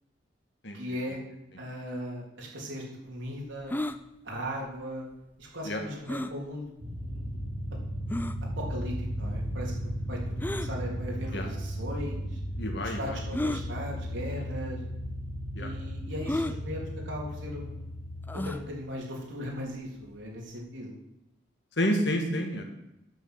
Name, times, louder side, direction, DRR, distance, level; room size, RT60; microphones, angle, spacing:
voice 1, 0.7-1.2 1.6-3.8 4.2-5.1 5.4-6.6 7.0-7.4 8.6-10.2 10.5-12.4 12.8-14.8 15.6-17.9 18.3-21.0, equal, 75° right, -2 dB, 3.6 m, -38 dB
sound 1, 3.7-4.0 6.1-6.4 7.1-7.2 8.1-8.4 10.4-10.7 11.8-11.9 13.3-13.6 14.6-14.7 15.0-15.1 16.3-16.6 18.3-18.6, left 1 dB, 10° left, 0.4 m, -32 dB
sound 2, 6.8-18.5, equal, 40° right, 2.2 m, -35 dB
voice 2, 12.6-13.2 15.6-15.7 21.8-22.6, equal, 60° left, 3 dB, 1.9 m, -29 dB
9.1 x 6.8 x 8.1 m, 0.86 s
head